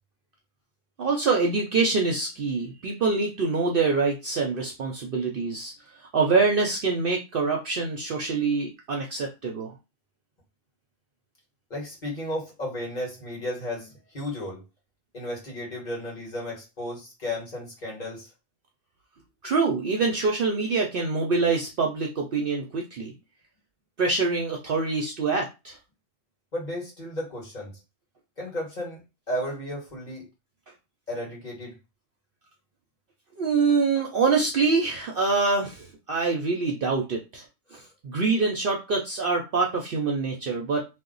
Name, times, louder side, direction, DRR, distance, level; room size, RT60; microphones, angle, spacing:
voice 1, 1.0-5.7 6.0-9.7 19.4-23.1 24.0-25.8 33.4-37.4 37.7-40.8, right 4 dB, 60° right, 1 dB, 0.6 m, -25 dB
voice 2, 11.7-14.6 15.1-18.3 26.5-27.8 28.4-29.0 29.3-30.3 31.1-31.7 37.7-37.8, left 1 dB, 40° left, -3 dB, 1.4 m, -34 dB
2.8 x 2.1 x 3.8 m, 0.26 s
omnidirectional pair, 1.3 m